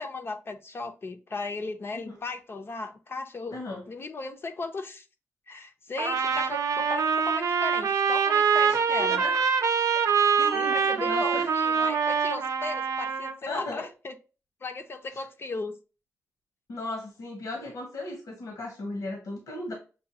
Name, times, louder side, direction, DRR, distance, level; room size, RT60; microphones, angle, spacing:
voice 1, 0.0-3.6 3.9-5.0 5.5-9.2 10.5-14.1 14.6-15.8, left 3 dB, 45° left, 0.6 m, -36 dB
voice 2, 3.5-3.8 8.7-9.5 9.9-10.0 10.4-11.5 13.4-13.9 15.1-15.2 16.7-19.7, left 2 dB, 80° left, 1.1 m, -36 dB
Trumpet, 6.0-13.4, right 6 dB, 70° right, 0.6 m, -25 dB
6.0 x 2.3 x 2.8 m
cardioid pair, 80°, 6 cm